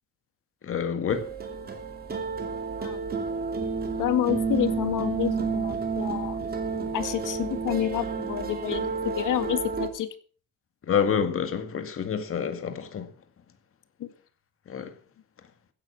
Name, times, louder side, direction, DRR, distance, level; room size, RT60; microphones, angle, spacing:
voice 1, 0.6-1.3 10.9-13.1 14.7-14.9, left 7 dB, 45° left, 2.1 m, -27 dB
sound 1, 1.1-9.9, right 5 dB, 30° right, 2.9 m, -30 dB
voice 2, 4.0-6.4 6.9-10.1 14.0-14.1, left 11 dB, 75° left, 2.0 m, -29 dB
16.0 x 9.6 x 6.0 m
cardioid pair, 145°, 31 cm